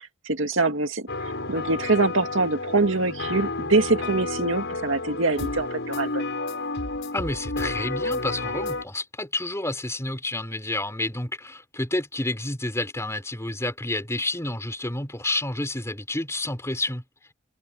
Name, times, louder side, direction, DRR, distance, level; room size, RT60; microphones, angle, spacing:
voice 1, 0.3-1.1 1.5-6.2, right 3 dB, 70° right, 2.3 m, -24 dB
sound 1, 1.1-8.8, left 2 dB, 65° left, 7.5 m, -31 dB
voice 2, 7.1-17.0, left 2 dB, 15° left, 4.3 m, -29 dB
head